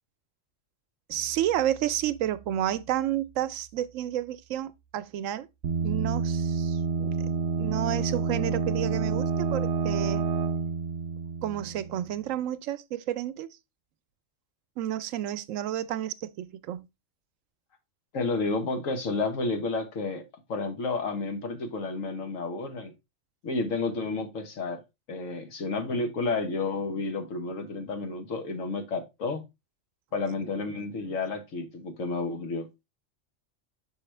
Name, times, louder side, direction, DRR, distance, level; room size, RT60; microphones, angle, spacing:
sound 1, 1.1-6.4, right 7 dB, 25° left, 1.2 m, -55 dB
voice 1, 1.1-5.5 5.8-10.3 11.4-13.5 14.8-16.9 31.1-31.2, right 11 dB, 85° right, 1.0 m, -31 dB
sound 2, 5.6-12.2, right 5 dB, 60° right, 0.7 m, -29 dB
voice 2, 18.1-20.2 20.5-22.9 23.4-24.8 25.1-29.4 30.1-32.7, left 3 dB, 85° left, 1.5 m, -31 dB
5.7 x 5.2 x 3.2 m
omnidirectional pair, 1.3 m